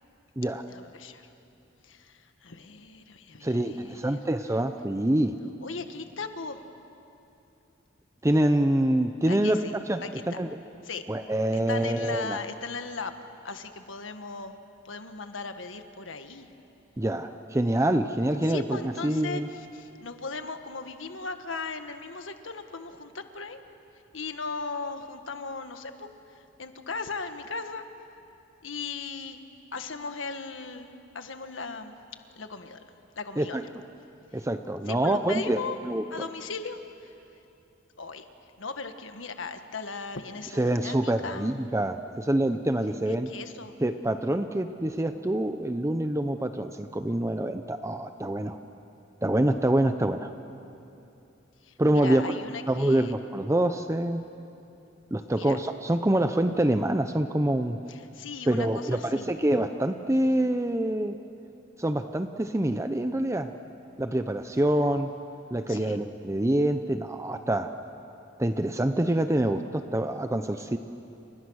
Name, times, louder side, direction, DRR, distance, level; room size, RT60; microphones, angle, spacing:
voice 1, 0.7-1.3 1.8-4.2 5.6-6.6 9.3-9.8 10.0-10.4 10.8-11.0 11.5-13.1 13.4-14.6 14.8-16.5 18.4-23.6 24.1-27.8 28.6-29.4 29.7-30.9 31.1-31.9 32.3-32.8 33.1-33.7 34.3-34.4 34.9-35.8 36.1-37.1 38.0-38.3 38.6-41.7 43.1-43.8 51.6-53.1 55.3-55.6 57.9-59.3 65.7-66.0, left 4 dB, 85° left, 8 dB, 1.5 m, -38 dB
voice 2, 3.4-5.3 8.2-9.6 9.9-10.5 11.1-12.4 17.0-19.5 33.4-33.6 34.3-36.0 40.6-43.3 43.8-48.6 49.2-50.3 51.8-52.4 52.7-54.2 55.1-57.8 58.5-61.2 61.8-63.5 64.0-65.1 65.5-67.7 68.4-70.8, right 1 dB, 15° right, 8 dB, 0.7 m, -26 dB
30.0 x 29.5 x 6.4 m, 2.8 s
head